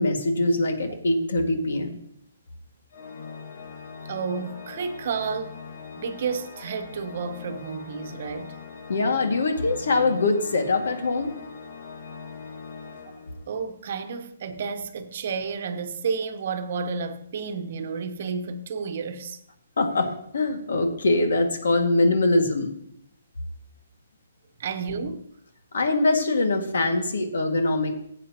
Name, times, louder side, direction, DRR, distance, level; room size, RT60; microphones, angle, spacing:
voice 1, 0.0-2.0 8.9-11.3 19.8-22.7 25.7-28.1, left 2 dB, 80° left, 2.0 m, -23 dB
Organ, 2.9-13.8, left 5 dB, 55° left, 1.9 m, -41 dB
voice 2, 4.1-5.6 6.0-8.6 13.5-19.4 24.6-25.3, right 5 dB, 45° right, 1.0 m, -31 dB
16.5 x 8.2 x 2.9 m
hypercardioid pair, 170°, 0 cm